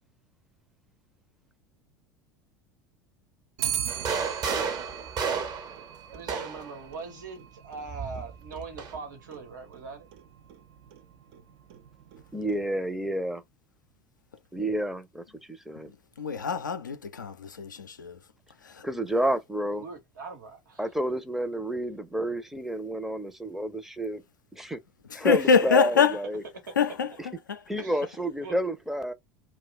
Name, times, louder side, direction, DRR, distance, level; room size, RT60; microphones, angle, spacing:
Clock, 3.6-13.0, right 9 dB, 55° right, 0.5 m, -40 dB
sound 1, 3.9-6.8 7.9-9.0, right 6 dB, 40° right, 0.8 m, -32 dB
voice 1, 6.1-10.1 19.8-20.9 25.4-25.8 26.7-26.8 27.8-28.0 28.4-28.6, right 4 dB, 75° right, 1.1 m, -41 dB
voice 2, 12.3-13.4 14.5-15.9 18.8-19.8 20.8-24.2 24.5-24.8 25.1-26.4 27.7-29.1, right 1 dB, 5° right, 0.6 m, -30 dB
voice 3, 16.2-18.2 18.6-18.9 25.1-26.2 26.8-27.1 27.5-27.6, left 6 dB, 85° left, 0.4 m, -24 dB
2.3 x 2.2 x 3.9 m
figure-of-eight pair, 75°, 10 cm